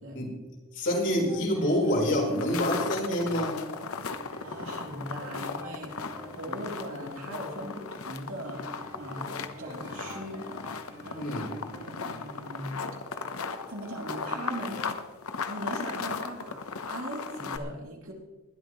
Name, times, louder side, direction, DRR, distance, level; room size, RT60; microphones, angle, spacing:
voice 1, 0.7-3.6 11.1-11.5, equal, 55° left, -2 dB, 4.3 m, -27 dB
sound 1, 1.3-14.9, equal, 20° right, 3.7 m, -48 dB
sound 2, 2.2-17.6, left 5 dB, 75° left, 0.9 m, -37 dB
voice 2, 4.4-8.7 9.0-11.3 11.7-12.8 13.7-14.8 15.5-16.6 16.9-18.1, right 1 dB, 70° right, 0 dB, 3.0 m, -40 dB
20.5 x 12.0 x 3.1 m, 1.2 s
head